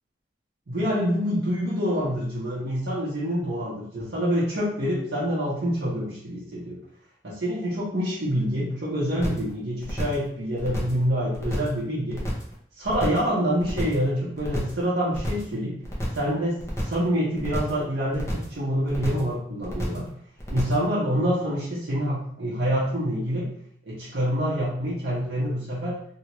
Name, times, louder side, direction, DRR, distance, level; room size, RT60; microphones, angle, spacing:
voice 1, 0.7-6.8 7.2-12.2 12.8-15.7 16.1-16.6 16.9-20.1 20.5-23.5 23.9-26.0, equal, 75° right, -9 dB, 0.8 m, -26 dB
sound 1, 9.2-9.5 9.8-10.3 10.6-11.0 11.3-11.8 12.1-12.5 12.8-13.3 13.6-14.1 14.4-14.8 15.1-15.5 15.8-16.3 16.6-17.1 17.4-17.8 18.1-18.6 18.9-19.3 19.6-20.1 20.4-20.9, equal, 15° left, 0.6 m, -31 dB
2.8 x 2.4 x 3.0 m, 0.64 s
head